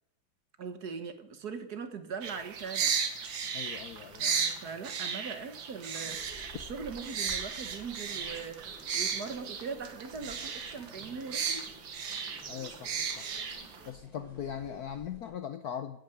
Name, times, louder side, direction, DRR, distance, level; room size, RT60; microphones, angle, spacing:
voice 1, 0.6-2.9 4.2-11.7, right 5 dB, 55° right, 1.7 m, -41 dB
sound 1, 2.2-13.9, right 6 dB, 75° right, 2.2 m, -35 dB
voice 2, 3.5-4.2 12.5-13.2 13.9-16.0, left 8 dB, 65° left, 1.1 m, -40 dB
sound 2, 6.0-15.3, equal, 85° left, 6.0 m, -53 dB
12.5 x 9.1 x 9.3 m
omnidirectional pair, 2.2 m